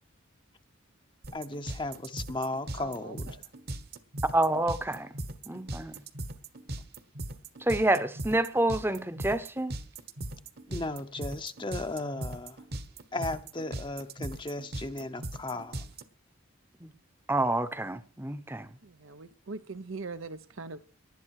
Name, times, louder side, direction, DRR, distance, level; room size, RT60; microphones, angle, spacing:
sound 1, 1.2-16.0, right 1 dB, 50° right, 1.3 m, -38 dB
voice 1, 1.3-3.4 10.7-12.6 13.1-15.8, left 2 dB, 20° left, 0.8 m, -36 dB
voice 2, 2.8-3.4 18.8-20.8, right 3 dB, 70° right, 0.8 m, -41 dB
voice 3, 4.3-5.1 5.5-5.9 7.7-9.7 16.8-16.9 17.3-18.7, right 1 dB, 10° right, 0.8 m, -28 dB
19.0 x 12.0 x 4.7 m
head